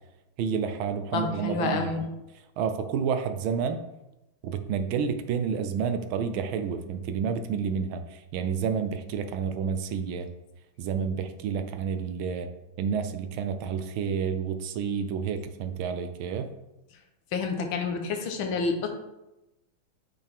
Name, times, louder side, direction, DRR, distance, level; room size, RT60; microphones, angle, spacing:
voice 1, 0.4-2.1 2.6-3.8 4.4-10.3 10.8-12.5 12.8-16.5, right 6 dB, 80° right, 9 dB, 1.4 m, -30 dB
voice 2, 1.1-2.0 17.3-18.9, left 4 dB, 75° left, 4 dB, 1.6 m, -28 dB
6.4 x 5.7 x 3.4 m, 0.94 s
omnidirectional pair, 2.3 m